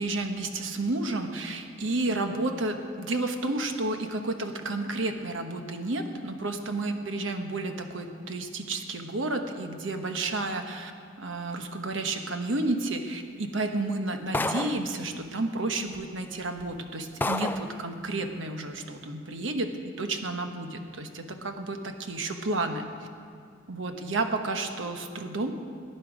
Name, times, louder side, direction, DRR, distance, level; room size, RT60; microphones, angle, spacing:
voice 1, 0.0-10.9 11.2-22.9 23.7-25.5, right 2 dB, 70° right, 6 dB, 1.1 m, -31 dB
sound 1, 14.3-14.9 15.9-16.0 16.6-16.7 17.2-17.7, left 2 dB, 10° left, 0.3 m, -29 dB
18.5 x 10.0 x 5.0 m, 2.3 s
head